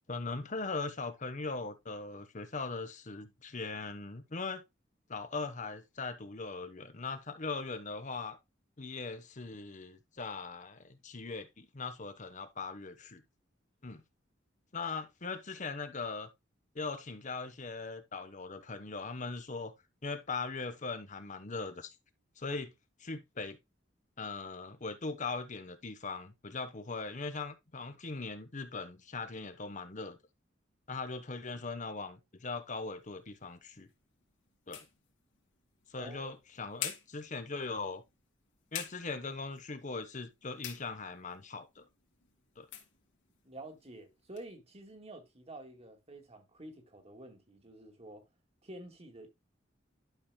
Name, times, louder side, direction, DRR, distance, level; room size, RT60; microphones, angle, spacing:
voice 1, 0.1-4.6 5.1-8.4 8.8-13.2 13.8-14.0 14.7-16.3 16.7-19.7 20.0-21.9 22.4-22.7 23.0-23.6 24.2-30.2 30.9-33.9 34.7-34.8 35.9-38.0 38.7-41.8 42.6-42.7, left 4 dB, 40° left, 1.0 m, -40 dB
sound 1, 33.0-44.5, left 10 dB, 80° left, 2.3 m, -49 dB
voice 2, 36.0-36.3 43.4-48.2 48.6-49.3, right 2 dB, 35° right, 2.0 m, -49 dB
11.5 x 6.2 x 2.2 m
head